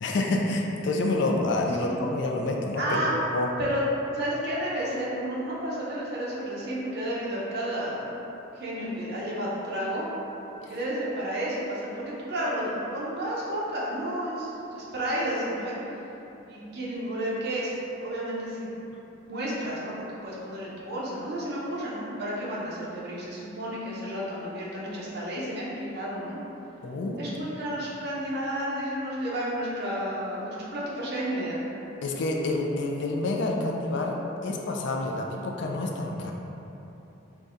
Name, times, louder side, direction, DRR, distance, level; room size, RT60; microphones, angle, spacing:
voice 1, 0.0-3.0 3.3-3.5 10.6-10.7 26.8-27.2 32.0-34.2 34.4-36.3, left 2 dB, 60° left, 0 dB, 0.4 m, -28 dB
voice 2, 2.8-3.1 3.6-3.8 4.1-8.1 8.6-10.1 10.7-15.8 16.5-17.7 18.0-18.7 19.2-19.9 20.2-26.4 27.2-31.6, right 1 dB, 55° right, -6 dB, 0.8 m, -31 dB
4.0 x 2.2 x 3.6 m, 3.0 s
head